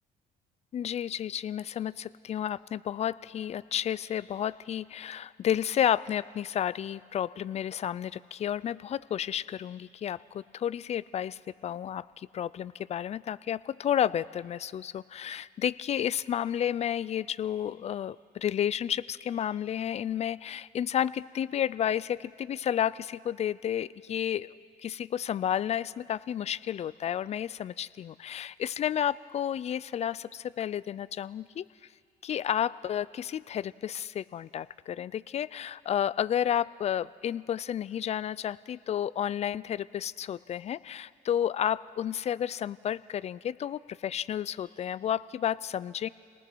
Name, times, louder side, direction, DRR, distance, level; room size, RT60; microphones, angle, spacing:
voice 1, 0.7-24.5 24.8-31.6 32.2-46.1, left 10 dB, 40° left, 19 dB, 0.4 m, -31 dB
29.5 x 19.0 x 4.6 m, 2.2 s
cardioid pair, 110°, 17 cm